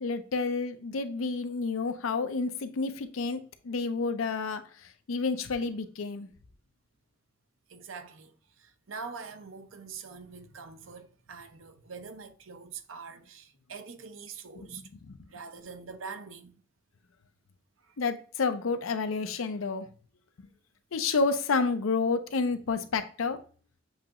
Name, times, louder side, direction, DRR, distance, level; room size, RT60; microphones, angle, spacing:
voice 1, 0.0-4.6 5.1-6.3 14.7-15.2 18.0-19.9 20.4-20.5 20.9-23.4, left 4 dB, 85° left, 0.6 m, -30 dB
voice 2, 7.7-14.8 15.3-16.5 17.8-18.0, right 5 dB, 70° right, 0.6 m, -44 dB
7.1 x 2.9 x 2.5 m
head